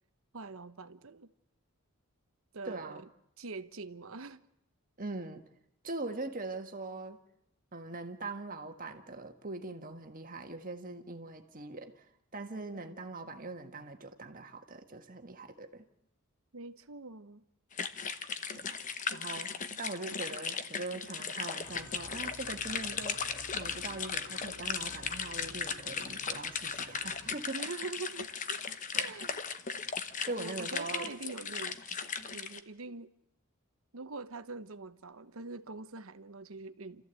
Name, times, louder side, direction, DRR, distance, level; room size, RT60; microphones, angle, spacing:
voice 1, 0.3-1.3 2.5-3.1 3.4-4.4 16.5-17.4 27.5-28.6 28.9-29.5 30.4-33.1 33.9-37.0, right 3 dB, 65° right, 1.0 m, -44 dB
voice 2, 2.6-3.0 5.0-5.4 5.8-7.2 7.7-12.0 12.3-15.8 18.5-18.8 19.1-19.5 19.8-27.6 28.9-29.1 30.2-31.1, right 2 dB, 40° right, 1.6 m, -41 dB
sound 1, 17.7-32.6, left 6 dB, 35° left, 0.9 m, -37 dB
sound 2, 21.6-27.4, left 1 dB, 85° left, 4.5 m, -52 dB
29.5 x 14.0 x 8.2 m
head